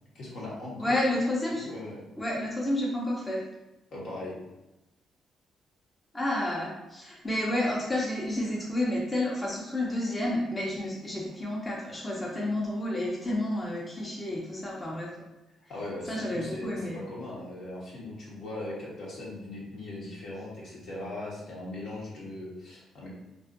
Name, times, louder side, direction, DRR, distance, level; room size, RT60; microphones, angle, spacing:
voice 1, 0.1-0.9 1.5-2.0 3.9-4.4 15.7-23.1, left 1 dB, 65° left, -5 dB, 1.0 m, -39 dB
voice 2, 0.8-1.7 2.2-3.4 6.1-15.1 16.1-17.0, left 1 dB, 20° left, -4 dB, 0.6 m, -30 dB
2.5 x 2.4 x 2.5 m, 0.98 s
cardioid pair, 90°, 0 cm